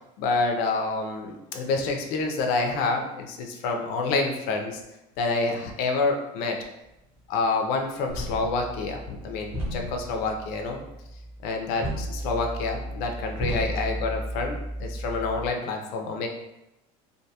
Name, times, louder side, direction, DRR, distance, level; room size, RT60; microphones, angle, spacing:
voice 1, 0.2-4.8 5.2-6.6 7.3-10.8 11.4-16.3, left 3 dB, 55° left, 2 dB, 0.4 m, -28 dB
sound 1, 8.1-15.5, equal, 10° right, 0.7 m, -34 dB
2.4 x 2.3 x 2.7 m, 0.91 s
cardioid pair, 170°, 18 cm